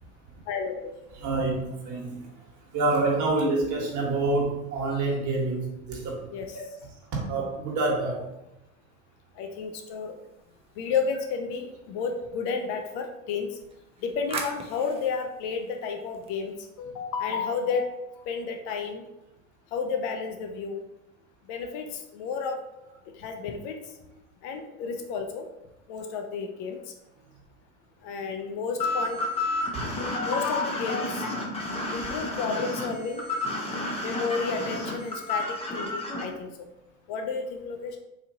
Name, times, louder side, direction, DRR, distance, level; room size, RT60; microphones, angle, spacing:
voice 1, 0.5-0.9 6.3-6.5 9.4-10.1 10.8-13.6 14.0-19.0 19.7-20.8 21.5-22.6 23.2-23.8 24.4-25.5 25.9-26.9 28.0-29.2 30.0-31.5 31.9-33.2 34.0-35.5 35.7-36.5 37.1-37.9, left 5 dB, 55° left, 4 dB, 0.5 m, -31 dB
voice 2, 1.1-2.3 2.7-6.2 6.5-6.6 7.1-8.2 29.7-29.9, right 2 dB, 40° right, -2 dB, 1.4 m, -27 dB
sound 1, 9.5-11.3 13.5-16.8, right 4 dB, 15° right, 0.3 m, -42 dB
sound 2, 28.8-36.2, left 2 dB, 15° left, 0.8 m, -31 dB
4.1 x 2.8 x 2.7 m, 0.90 s
supercardioid pair, 115°, 44 cm